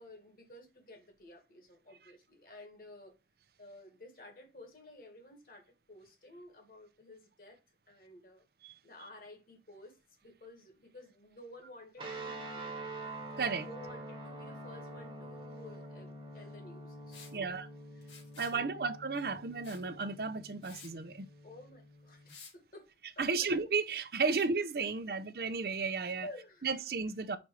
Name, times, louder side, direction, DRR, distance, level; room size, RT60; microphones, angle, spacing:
voice 1, 0.0-3.1 3.6-7.6 7.9-8.5 8.8-12.8 13.5-17.5 18.0-18.8 21.4-22.9 23.2-23.5 25.1-25.2 26.2-26.7, left 1 dB, 55° left, 2.0 m, -53 dB
sound 1, 12.0-22.3, right 2 dB, 30° right, 1.4 m, -46 dB
Liquid, 17.1-17.4 18.0-18.6 19.6-19.9 20.3-20.4 20.6-20.9 22.3-22.5, left 5 dB, 85° left, 2.7 m, -52 dB
voice 2, 17.3-17.7 18.4-21.3 23.2-26.3 26.6-27.4, right 4 dB, 60° right, 0.6 m, -33 dB
5.2 x 4.3 x 4.8 m
head